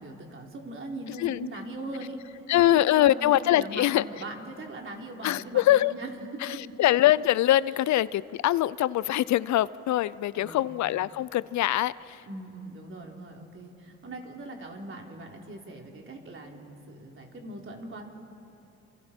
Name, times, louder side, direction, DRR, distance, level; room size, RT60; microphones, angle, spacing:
voice 1, 0.0-6.1 6.5-6.7 10.3-10.7 12.3-18.0, right 2 dB, 45° right, 1 dB, 3.4 m, -41 dB
voice 2, 2.5-4.0 5.2-5.9 6.4-12.2, left 14 dB, 70° left, 19 dB, 0.5 m, -23 dB
29.5 x 27.5 x 4.4 m, 2.8 s
cardioid pair, 90°, 30 cm